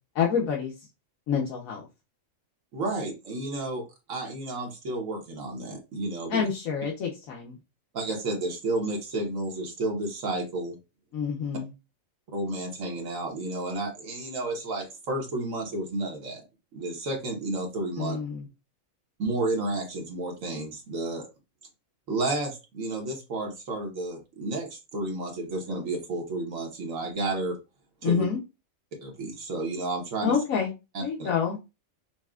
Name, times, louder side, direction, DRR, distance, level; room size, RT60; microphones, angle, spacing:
voice 1, 0.1-0.7 1.3-1.9 6.3-7.6 11.1-11.7 18.0-18.5 28.0-28.4 30.2-30.7 31.0-31.6, left 7 dB, 85° left, -2 dB, 1.3 m, -27 dB
voice 2, 2.7-3.8 4.1-6.4 7.9-10.8 12.3-16.4 16.7-18.2 19.2-21.3 22.1-27.6 28.0-28.2 29.0-30.4 30.9-31.3, right 2 dB, 75° right, 1 dB, 1.4 m, -31 dB
5.8 x 2.1 x 2.3 m, 0.26 s
omnidirectional pair, 1.4 m